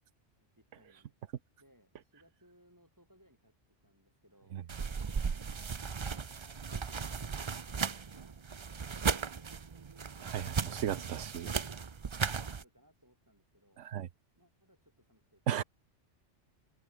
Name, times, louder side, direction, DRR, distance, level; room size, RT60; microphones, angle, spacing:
voice 1, 0.4-1.1 1.6-4.6 6.0-10.1 12.3-13.9 14.4-15.6, equal, 15° right, 7.2 m, -66 dB
sound 1, 4.7-12.6, right 5 dB, 35° right, 0.5 m, -36 dB
voice 2, 10.2-11.5 13.8-14.1 15.5-15.6, right 10 dB, 80° right, 1.2 m, -35 dB
omnidirectional pair, 1.2 m